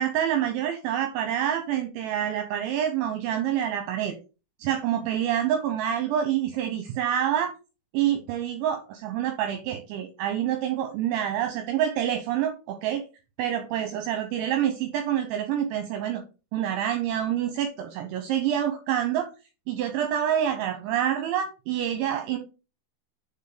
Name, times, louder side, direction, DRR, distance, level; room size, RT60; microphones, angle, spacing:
voice 1, 0.0-4.1 4.6-7.5 7.9-13.0 13.4-16.2 16.5-19.3 19.7-22.4, right 10 dB, 80° right, 5 dB, 3.0 m, -27 dB
6.7 x 4.6 x 4.9 m, 0.32 s
omnidirectional pair, 5.6 m